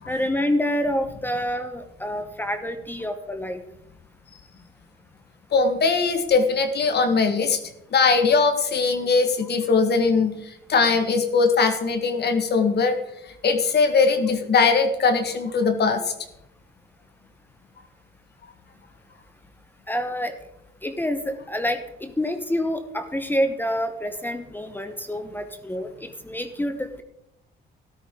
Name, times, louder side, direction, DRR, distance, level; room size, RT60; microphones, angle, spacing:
voice 1, 0.1-3.6 19.9-20.3 20.8-27.0, equal, 10° left, 8 dB, 1.1 m, -27 dB
voice 2, 5.5-7.6 7.9-13.0 13.3-16.1, left 4 dB, 55° left, 7 dB, 1.6 m, -21 dB
13.0 x 13.0 x 3.8 m, 0.85 s
cardioid pair, 90°, 20 cm